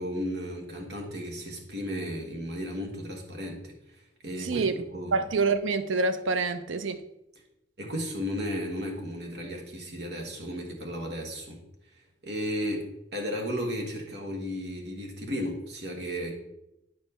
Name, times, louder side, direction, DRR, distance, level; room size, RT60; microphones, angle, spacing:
voice 1, 0.0-3.7 4.2-4.6 4.9-5.1 7.8-11.6 12.2-16.4, equal, 55° right, 1.3 m, -34 dB
voice 2, 4.4-4.8 5.1-7.0, right 4 dB, 90° right, 0.5 m, -27 dB
8.8 x 3.0 x 5.5 m
head